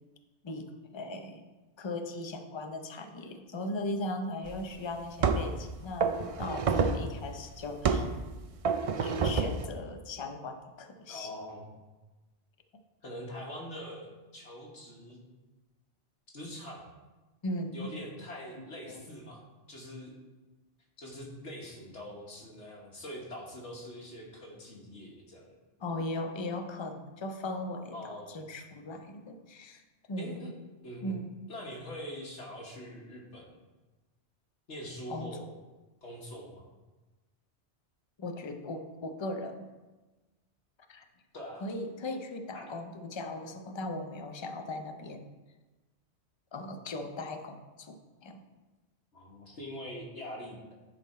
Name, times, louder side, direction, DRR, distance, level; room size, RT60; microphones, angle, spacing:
voice 1, 0.4-1.5 1.8-8.1 9.0-11.3 17.4-17.9 18.9-19.0 25.8-29.8 30.1-30.5 31.0-31.4 35.1-35.4 38.2-39.7 40.9-41.0 41.6-45.3 46.5-48.4, left 2 dB, 35° left, 6 dB, 0.5 m, -38 dB
sound 1, 4.5-4.6 5.2-5.6 6.0-7.1 7.8-8.2 8.6-9.7, right 5 dB, 65° right, 0.3 m, -28 dB
voice 2, 11.1-11.6 13.0-15.2 16.3-16.9 17.7-19.4 19.7-20.1 21.0-25.5 27.9-28.4 30.2-30.5 30.8-31.2 31.5-33.5 34.7-35.5 36.0-36.7 41.3-41.6 42.5-42.7 49.1-50.7, equal, 75° left, -3 dB, 1.6 m, -43 dB
10.0 x 4.1 x 4.2 m, 1.2 s
omnidirectional pair, 1.2 m